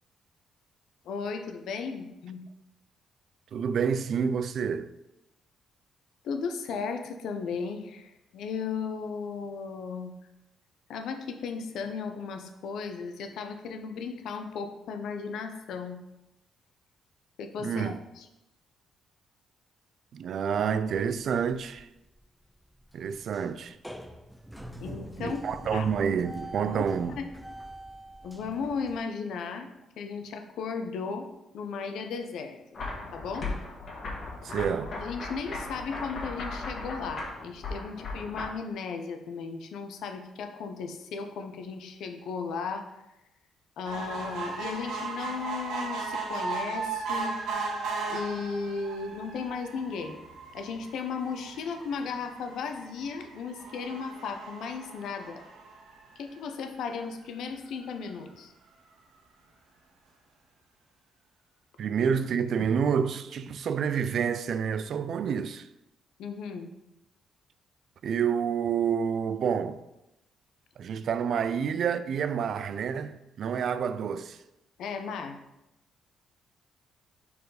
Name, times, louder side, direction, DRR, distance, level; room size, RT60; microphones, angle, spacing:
voice 1, 1.0-2.4 6.2-10.1 10.9-16.0 17.4-18.3 24.8-25.4 25.7-25.9 26.6-27.3 28.2-29.7 30.0-31.3 31.5-32.6 33.1-33.5 35.0-42.9 43.8-47.4 48.1-50.2 50.5-55.4 56.2-58.5 66.2-66.7 74.8-75.4, left 5 dB, 80° left, 0.7 m, -35 dB
voice 2, 3.5-4.9 17.6-18.0 20.1-21.9 22.9-23.8 25.2-27.2 34.4-35.0 61.8-65.6 68.0-69.8 70.8-74.4, right 7 dB, 65° right, 0.3 m, -28 dB
sound 1, 20.7-29.0, equal, ahead, 0.5 m, -45 dB
sound 2, 32.7-38.4, left 3 dB, 50° left, 1.8 m, -37 dB
sound 3, 43.9-56.5 57.0-57.1 57.4-57.5 57.8-57.9, right 4 dB, 85° right, 1.3 m, -37 dB
4.7 x 4.1 x 4.9 m
cardioid pair, 90°, 0 cm